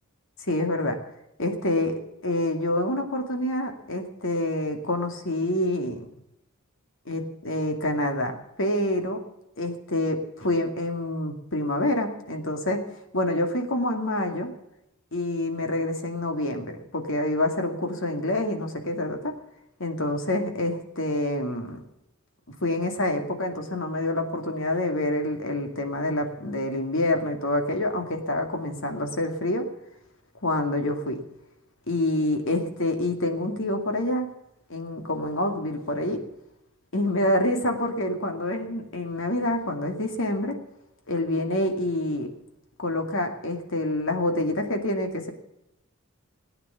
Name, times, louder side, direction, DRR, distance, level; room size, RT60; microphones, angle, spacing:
voice 1, 0.4-1.0 1.4-1.9 2.2-6.1 7.1-9.2 9.6-12.8 13.1-14.5 15.1-19.4 19.8-21.8 22.5-29.7 30.4-31.2 31.9-34.3 34.7-36.2 36.9-40.6 41.1-42.3 42.8-45.3, left 1 dB, 65° left, 4 dB, 2.4 m, -27 dB
18.5 x 9.6 x 7.0 m, 0.87 s
head